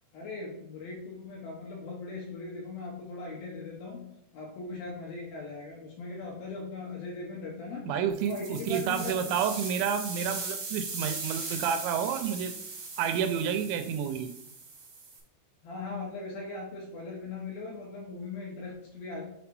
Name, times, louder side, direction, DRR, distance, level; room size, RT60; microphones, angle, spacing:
voice 1, 0.1-4.0 4.3-7.9 8.2-9.3 15.6-19.2, left 3 dB, 70° left, -3 dB, 2.3 m, -39 dB
voice 2, 7.9-12.6 13.0-14.3, right 8 dB, 85° right, 8 dB, 2.7 m, -30 dB
sound 1, 8.1-15.2, right 4 dB, 65° right, 1.5 m, -39 dB
6.9 x 3.2 x 4.6 m, 0.77 s
omnidirectional pair, 5.4 m